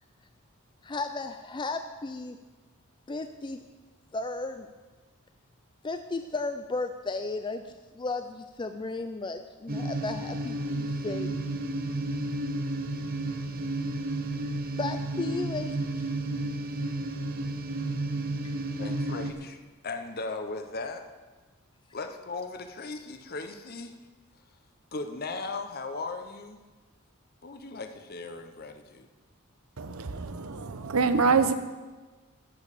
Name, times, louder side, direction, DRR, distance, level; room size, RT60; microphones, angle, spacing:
voice 1, 0.8-2.4 3.1-3.6 4.1-4.7 5.8-11.3 14.8-16.1 18.4-18.5, left 3 dB, 20° left, 7 dB, 0.4 m, -34 dB
sound 1, 9.7-19.3, right 2 dB, 45° right, 0.9 m, -32 dB
voice 2, 18.8-19.6 19.8-21.0 21.9-23.9 24.9-26.6 27.4-29.1, left 3 dB, 45° left, 7 dB, 0.9 m, -37 dB
voice 3, 29.8-31.5, right 5 dB, 85° right, 10 dB, 0.8 m, -25 dB
12.5 x 5.3 x 8.3 m, 1.3 s
head